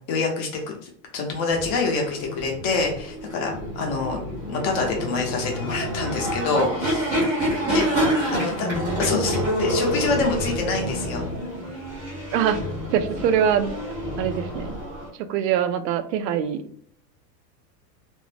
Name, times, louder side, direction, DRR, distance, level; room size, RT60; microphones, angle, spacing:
voice 1, 0.1-4.2 4.5-7.1 7.7-8.7 9.0-11.3, left 4 dB, 35° left, 1 dB, 0.7 m, -26 dB
sound 1, 1.5-15.1, equal, 5° right, 0.3 m, -28 dB
voice 2, 12.9-13.7 14.2-14.8 15.2-16.6, right 8 dB, 90° right, 9 dB, 0.6 m, -23 dB
2.5 x 2.0 x 3.2 m, 0.64 s
supercardioid pair, 160°, 48 cm